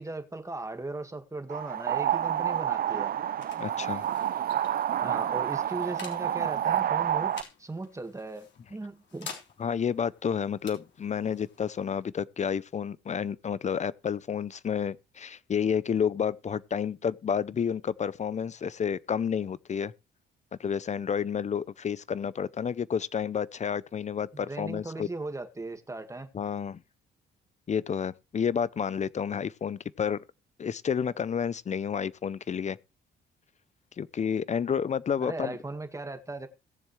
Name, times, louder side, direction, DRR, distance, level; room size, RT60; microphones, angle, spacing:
voice 1, 0.0-3.1 5.0-7.3 7.6-9.3 24.5-26.3 35.2-36.5, right 2 dB, 15° right, 1.6 m, -37 dB
sound 1, 1.5-7.4, right 10 dB, 50° right, 0.5 m, -29 dB
sound 2, 2.8-14.0, left 6 dB, 60° left, 3.6 m, -51 dB
voice 2, 3.6-4.1 9.6-19.9 20.6-25.1 26.3-26.8 27.7-30.2 30.6-32.8 34.0-35.6, left 7 dB, 35° left, 0.5 m, -30 dB
18.0 x 7.2 x 3.2 m
cardioid pair, 90°, 20 cm